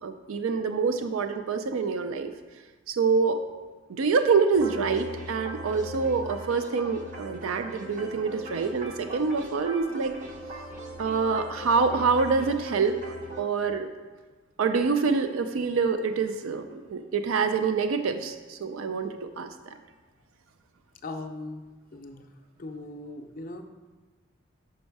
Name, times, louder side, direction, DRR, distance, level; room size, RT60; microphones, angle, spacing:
voice 1, 0.0-2.3 2.9-3.4 3.9-10.1 11.0-13.0 13.4-13.9 14.6-19.5, right 5 dB, 80° right, 8 dB, 0.4 m, -26 dB
sound 1, 4.5-13.4, equal, 40° right, 0.9 m, -40 dB
voice 2, 21.0-21.6 21.9-22.3 22.6-23.6, left 2 dB, 45° left, 6 dB, 0.5 m, -39 dB
6.2 x 5.3 x 4.6 m, 1.3 s
head